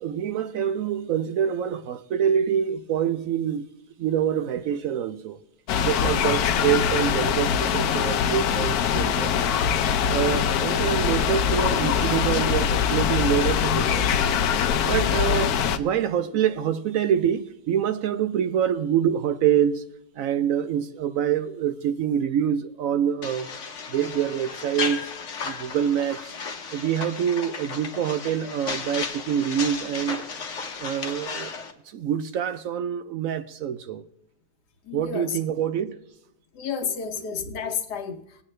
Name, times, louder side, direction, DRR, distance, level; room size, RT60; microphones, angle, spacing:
voice 1, 0.0-3.7 4.0-5.4 5.8-9.3 10.1-14.3 14.9-19.8 20.2-23.5 23.9-25.1 25.4-26.3 26.7-30.2 30.5-31.5 31.9-34.0 34.9-36.0, right 9 dB, 70° right, 0.9 m, -26 dB
sound 1, 5.7-15.8, left 8 dB, 75° left, 1.1 m, -23 dB
sound 2, 23.2-31.7, left 5 dB, 55° left, 1.2 m, -34 dB
voice 2, 34.8-35.4 36.5-38.4, left 7 dB, 90° left, 1.5 m, -31 dB
20.0 x 8.4 x 3.2 m
omnidirectional pair, 1.7 m